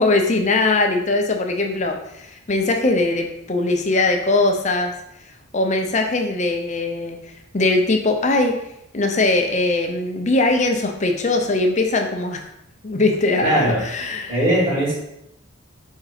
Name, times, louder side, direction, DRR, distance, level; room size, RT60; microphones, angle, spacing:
voice 1, 0.0-4.9 5.5-7.2 7.5-8.6 8.9-12.4 12.8-14.3, left 2 dB, 35° left, 4 dB, 0.6 m, -20 dB
voice 2, 13.4-13.8 14.3-14.9, right 1 dB, 35° right, -9 dB, 2.1 m, -19 dB
5.3 x 3.7 x 5.0 m, 0.82 s
head